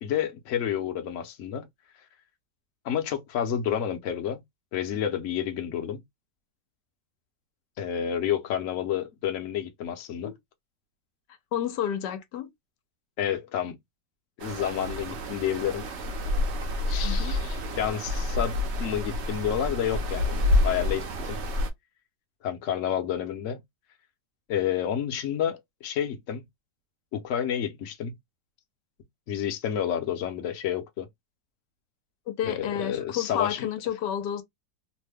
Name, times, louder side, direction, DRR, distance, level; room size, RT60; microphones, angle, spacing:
voice 1, 0.0-1.7 2.8-4.4 4.7-6.0 7.8-10.3 13.2-13.8 14.4-15.8 16.9-21.4 22.4-23.6 24.5-26.4 27.1-28.1 29.3-31.1 32.5-33.7, left 9 dB, 60° left, 0.9 m, -30 dB
voice 2, 11.5-12.5 17.0-17.4 32.3-34.4, left 10 dB, 80° left, 1.2 m, -30 dB
sound 1, 14.4-21.7, left 1 dB, 55° right, 0.8 m, -28 dB
3.0 x 2.1 x 3.3 m
omnidirectional pair, 1.9 m